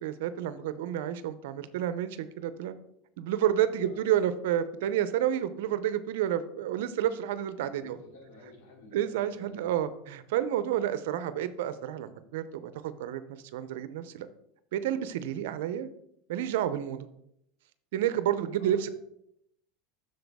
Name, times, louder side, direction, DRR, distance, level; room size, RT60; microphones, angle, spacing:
voice 1, 0.0-2.7 3.2-8.0 8.9-12.7 13.0-13.2 13.5-14.3 14.7-15.9 16.3-17.1 17.9-18.9, right 11 dB, 80° right, 13 dB, 0.5 m, -30 dB
voice 2, 3.8-4.1 7.7-9.7 10.6-10.8 15.0-15.2 18.6-18.9, left 2 dB, 80° left, -1 dB, 3.5 m, -52 dB
7.8 x 6.6 x 3.5 m, 0.75 s
supercardioid pair, 130°, 0 cm